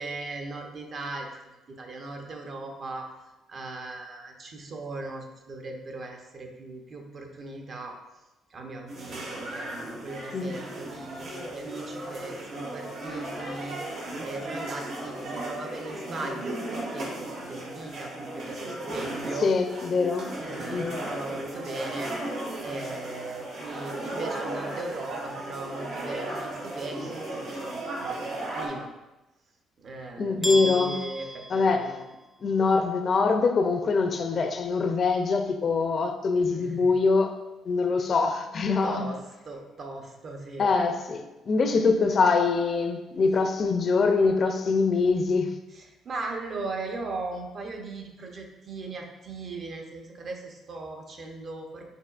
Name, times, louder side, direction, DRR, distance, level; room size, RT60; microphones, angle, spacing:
voice 1, 0.0-3.1 3.5-7.9 8.5-19.5 20.4-22.4 22.6-28.9 29.8-32.0 36.5-37.0 38.8-39.2 39.4-40.7 45.7-51.8, right 3 dB, 50° right, 0.8 m, -38 dB
sound 1, 8.9-28.7, right 1 dB, 75° right, 1.5 m, -36 dB
voice 2, 19.4-20.3 20.7-21.0 30.2-31.0 31.5-31.9 32.4-37.3 37.7-39.0 40.6-45.5, left 4 dB, 45° left, 0.4 m, -24 dB
sound 2, 30.4-32.4, right 1 dB, 10° right, 0.5 m, -34 dB
5.4 x 3.8 x 2.4 m
cardioid pair, 80°, 0 cm